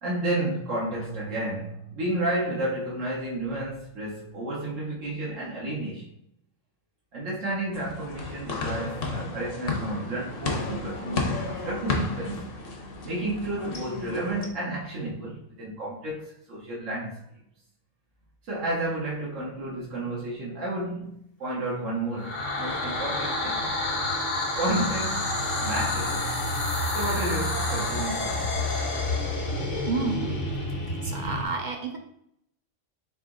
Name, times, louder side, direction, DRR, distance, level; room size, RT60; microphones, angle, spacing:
voice 1, 0.0-6.1 7.1-12.5 13.0-17.2 18.5-23.7 24.5-26.3 26.9-28.6, right 1 dB, 85° right, -5 dB, 1.3 m, -31 dB
sound 1, 7.7-14.5, left 3 dB, 55° left, 0.9 m, -33 dB
sound 2, 22.1-31.5, left 2 dB, 80° left, 1.3 m, -28 dB
voice 2, 29.9-30.5 31.0-32.0, right 4 dB, 55° right, 2 dB, 0.5 m, -30 dB
4.0 x 2.8 x 3.7 m, 0.74 s
omnidirectional pair, 1.3 m